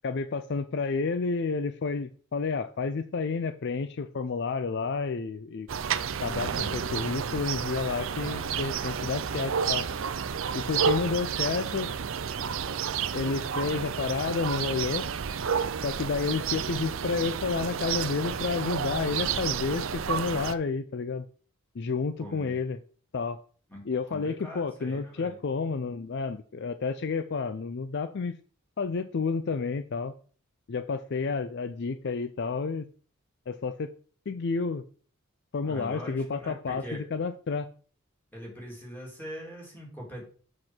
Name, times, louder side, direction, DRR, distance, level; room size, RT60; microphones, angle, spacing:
voice 1, 0.0-5.7 6.2-9.9 10.5-11.9 13.1-15.1 15.8-21.3 21.7-22.8 23.1-23.4 23.8-28.4 28.8-30.1 30.7-32.9 33.5-33.9 34.3-34.8 35.5-37.7, left 4 dB, 55° left, 11 dB, 0.4 m, -30 dB
sound 1, 5.7-20.5, right 7 dB, 65° right, 0.5 m, -31 dB
voice 2, 22.2-22.6 23.7-23.8 24.1-25.4 35.6-37.0 38.3-40.2, equal, 10° left, -3 dB, 3.2 m, -42 dB
7.6 x 6.1 x 4.4 m, 0.42 s
head